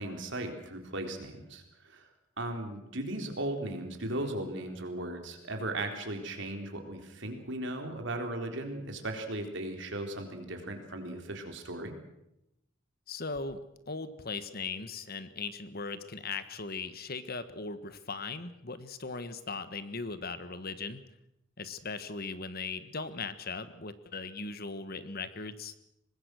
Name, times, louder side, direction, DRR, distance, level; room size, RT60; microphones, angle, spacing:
voice 1, 0.0-2.1 2.4-11.9, right 1 dB, 65° right, 4 dB, 3.9 m, -37 dB
voice 2, 13.1-13.6 13.9-21.0 21.6-25.7, left 4 dB, 50° left, 12 dB, 1.4 m, -38 dB
24.5 x 20.0 x 6.4 m, 0.83 s
head